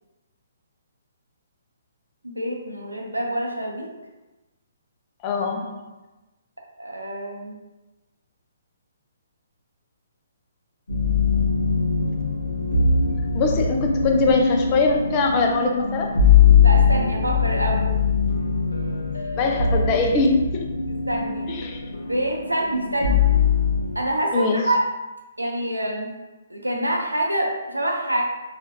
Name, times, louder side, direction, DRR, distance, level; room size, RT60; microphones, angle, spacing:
voice 1, 2.2-3.9 6.8-7.5 16.6-17.9 21.1-21.5 22.0-23.3 23.9-24.8 25.4-26.1 26.5-28.2, right 1 dB, 85° right, 0 dB, 0.7 m, -26 dB
voice 2, 5.2-5.8 13.3-16.1 19.4-20.7 21.5-21.8 24.3-24.6, left 3 dB, 30° left, 2 dB, 0.5 m, -22 dB
sound 1, 10.9-23.9, left 6 dB, 70° left, 0.7 m, -21 dB
4.2 x 2.5 x 2.7 m, 1.1 s
figure-of-eight pair, 130°, 0 cm